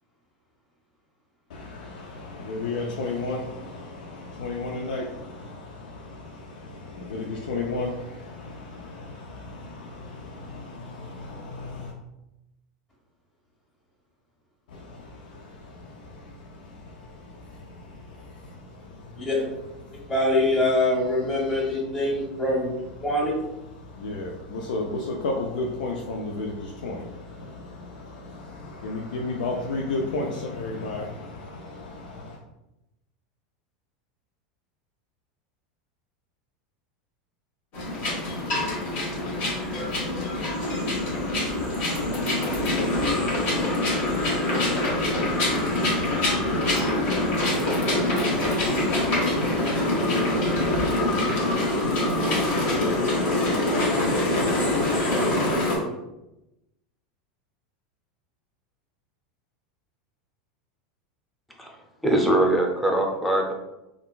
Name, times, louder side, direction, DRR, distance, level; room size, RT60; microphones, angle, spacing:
voice 1, 1.5-11.9 14.7-19.3 19.8-20.1 21.4-21.7 23.8-32.4, left 2 dB, 85° left, -1 dB, 0.4 m, -34 dB
voice 2, 20.1-22.7 23.0-23.3, left 1 dB, 25° left, -7 dB, 1.4 m, -24 dB
sound 1, 37.7-55.8, left 1 dB, 50° left, 1.1 m, -24 dB
voice 3, 61.6-63.5, right 1 dB, ahead, 0 dB, 0.6 m, -23 dB
3.7 x 2.3 x 2.3 m, 0.94 s
supercardioid pair, 115°, 4 cm